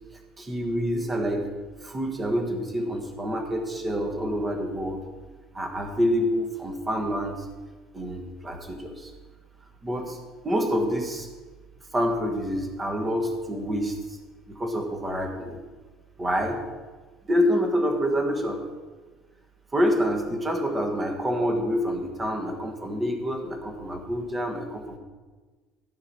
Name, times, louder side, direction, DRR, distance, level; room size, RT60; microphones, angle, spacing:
voice 1, 0.4-1.5 1.8-5.0 5.5-7.5 7.9-9.1 9.8-10.2 10.4-11.3 11.9-14.2 14.5-15.6 16.2-16.6 17.3-18.6 19.7-25.0, equal, 15° right, 4 dB, 1.4 m, -27 dB
13.0 x 6.0 x 5.9 m, 1.3 s
cardioid pair, 170°, 0 cm